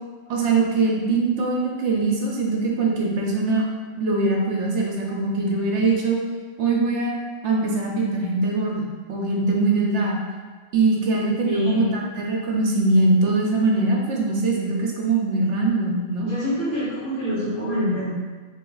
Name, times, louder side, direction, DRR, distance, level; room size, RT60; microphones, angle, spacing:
voice 1, 0.3-3.6 4.0-6.2 6.6-7.1 7.4-10.2 10.7-16.3, right 3 dB, 65° right, -1 dB, 0.9 m, -22 dB
voice 2, 11.4-11.9 16.2-18.2, left 1 dB, 80° left, -9 dB, 1.5 m, -25 dB
3.5 x 3.0 x 3.9 m, 1.4 s
omnidirectional pair, 1.3 m